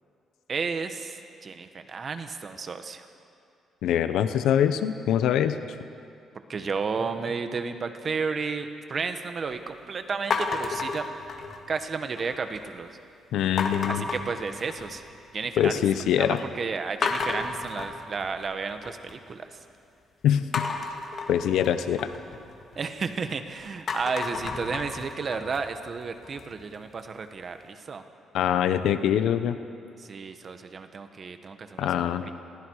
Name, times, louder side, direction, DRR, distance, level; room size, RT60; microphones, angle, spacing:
voice 1, 0.5-3.0 6.5-11.1 11.7-12.9 13.9-15.1 15.3-15.8 16.2-19.5 22.8-28.0 30.0-32.1, right 5 dB, 45° right, 8 dB, 1.6 m, -32 dB
voice 2, 3.8-5.6 13.3-14.1 15.6-16.4 20.2-20.7 21.3-22.1 28.3-29.6 31.8-32.2, left 10 dB, 85° left, 10 dB, 0.9 m, -24 dB
sound 1, 10.3-11.8 12.2-12.7 13.6-15.1 15.4-16.0 16.4-16.5 17.0-19.1 20.5-23.3 23.7-26.6, left 4 dB, 55° left, 2.1 m, -32 dB
29.5 x 22.0 x 4.9 m, 2.5 s
cardioid pair, 90°, 0 cm